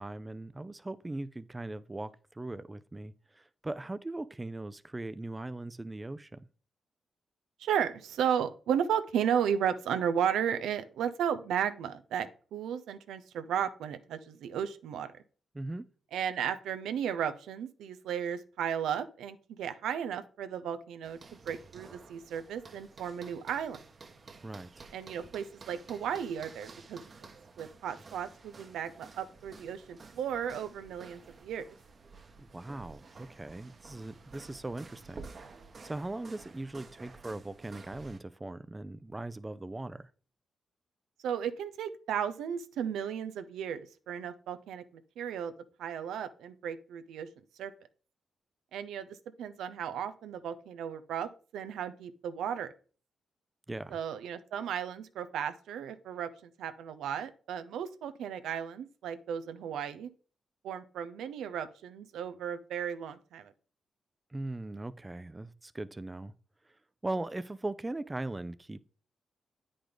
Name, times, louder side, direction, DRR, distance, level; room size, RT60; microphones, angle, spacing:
voice 1, 0.0-6.5 15.5-15.8 24.4-24.9 32.4-35.3 35.8-40.1 53.7-54.0 64.3-66.3 67.0-68.8, right 2 dB, 20° right, 0.5 m, -39 dB
voice 2, 7.6-15.1 16.1-21.2 21.5-23.8 24.9-27.0 27.6-31.6 41.2-45.5 45.8-47.3 47.6-47.7 48.7-52.7 53.9-60.1 60.6-63.5, right 8 dB, 90° right, 0.6 m, -34 dB
sound 1, 21.0-38.2, right 4 dB, 50° right, 1.1 m, -52 dB
8.7 x 5.0 x 3.9 m
cardioid pair, 60°, 0 cm